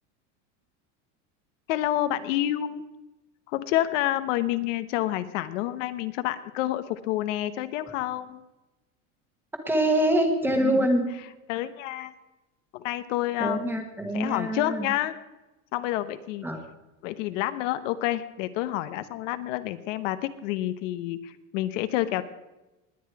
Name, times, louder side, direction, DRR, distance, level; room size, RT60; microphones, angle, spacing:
voice 1, 1.7-2.8 3.5-8.4 10.5-10.9 11.5-12.1 12.7-13.8 14.1-15.2 15.7-16.5 17.0-22.2, left 14 dB, 75° left, 12 dB, 1.0 m, -29 dB
voice 2, 9.6-11.1 13.4-14.9 16.4-16.6, right 1 dB, 5° right, 5 dB, 1.4 m, -25 dB
20.0 x 9.7 x 4.8 m, 1.0 s
cardioid pair, 175°, 38 cm